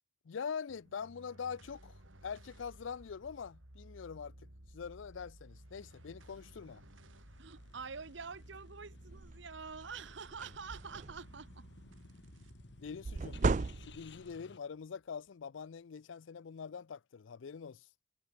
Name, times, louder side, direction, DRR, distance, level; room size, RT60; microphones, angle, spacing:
voice 1, 0.2-4.3 4.7-6.8 12.8-13.4 13.8-17.9, left 6 dB, 75° left, 0.4 m, -44 dB
sound 1, 0.7-15.3, right 1 dB, 85° right, 4.6 m, -57 dB
sound 2, 5.8-14.6, left 3 dB, 60° left, 1.3 m, -59 dB
voice 2, 7.4-11.6, right 5 dB, 70° right, 1.0 m, -46 dB
sound 3, 9.1-9.4 9.8-10.0 10.3-11.4 13.0-14.3, right 3 dB, 40° right, 0.4 m, -34 dB
head